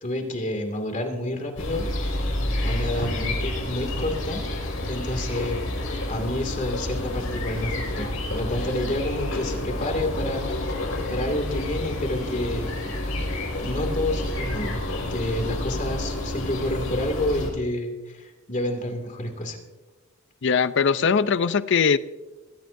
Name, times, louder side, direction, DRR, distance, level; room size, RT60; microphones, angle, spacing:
voice 1, 0.0-2.3 2.6-4.4 4.9-5.6 6.1-10.5 11.1-12.7 13.6-14.8 15.1-19.6, left 1 dB, 35° left, 4 dB, 2.4 m, -29 dB
sound 1, 1.6-17.5, left 1 dB, 80° left, 5.3 m, -29 dB
voice 2, 20.4-22.0, left 6 dB, 60° left, 14 dB, 0.5 m, -20 dB
23.0 x 14.5 x 2.7 m, 1.1 s
head